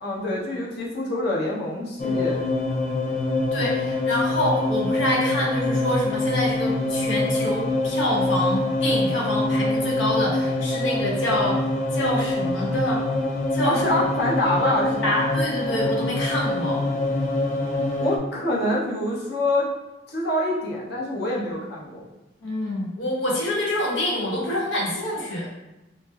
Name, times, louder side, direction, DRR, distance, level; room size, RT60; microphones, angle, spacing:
voice 1, 0.0-2.5 13.6-15.1 18.0-19.7 20.1-22.1, left 1 dB, 60° left, -5 dB, 1.0 m, -26 dB
sound 1, 2.0-18.2, left 2 dB, 40° left, 0.5 m, -25 dB
voice 2, 3.5-13.0 13.5-14.0 14.8-16.8 22.4-25.5, left 1 dB, 90° left, -3 dB, 1.1 m, -26 dB
5.3 x 2.0 x 2.4 m, 0.98 s
head